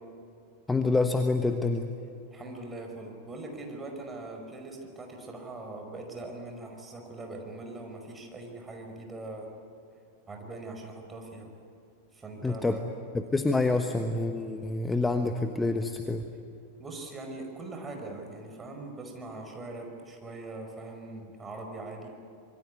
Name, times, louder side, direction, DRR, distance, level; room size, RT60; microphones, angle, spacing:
voice 1, 0.7-1.9 12.4-12.8 13.1-16.2, left 3 dB, 10° left, 6 dB, 1.3 m, -27 dB
voice 2, 2.3-9.5 10.3-11.5 12.1-13.1 16.8-22.1, right 2 dB, 15° right, 2 dB, 5.2 m, -41 dB
26.0 x 23.0 x 9.4 m, 2.6 s
figure-of-eight pair, 90°, 0 cm